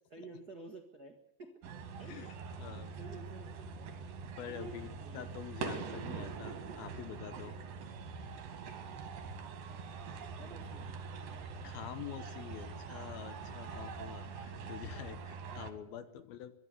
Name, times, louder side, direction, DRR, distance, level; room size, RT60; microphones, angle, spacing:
voice 1, 0.1-3.8 4.5-5.3 10.3-10.9 15.8-16.2, right 2 dB, 85° right, 3 dB, 0.8 m, -52 dB
sound 1, 1.6-15.7, right 5 dB, 60° right, 3.4 m, -44 dB
voice 2, 2.6-2.9 4.4-7.5 11.6-16.5, left 10 dB, 70° left, 12 dB, 2.6 m, -46 dB
23.5 x 12.0 x 9.8 m, 0.92 s
omnidirectional pair, 4.9 m